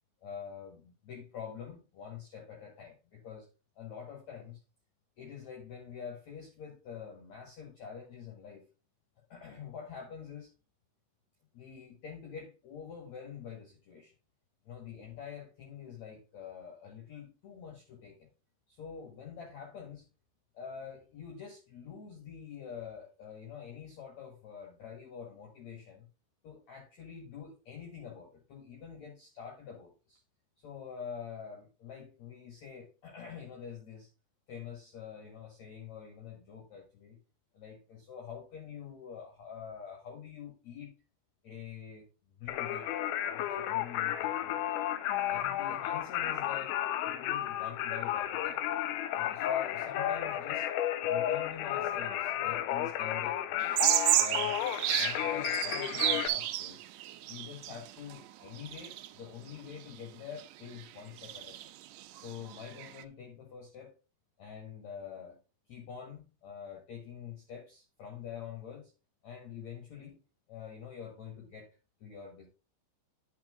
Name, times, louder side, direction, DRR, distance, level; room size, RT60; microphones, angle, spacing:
voice 1, 0.2-3.5 3.8-4.6 5.2-8.6 9.3-10.5 11.5-14.1 14.6-18.3 18.7-20.1 20.5-26.1 26.4-30.2 30.6-34.1 34.5-37.2 37.5-40.9 41.4-43.0 43.3-44.8 45.3-46.8 47.0-48.6 49.1-50.7 51.0-53.9 54.2-54.6 54.9-56.8 57.3-61.7 62.1-63.9 64.4-65.4 65.7-68.9 69.2-70.2 70.5-72.5, left 7 dB, 60° left, 2.0 m, -46 dB
Singing, 42.5-56.3, left 11 dB, 80° left, 2.9 m, -32 dB
sound 1, 53.6-58.2 58.6-59.1 60.4-60.5 60.8-60.9 61.2-63.0, right 16 dB, 80° right, 2.8 m, -31 dB
10.0 x 5.7 x 3.6 m
omnidirectional pair, 5.6 m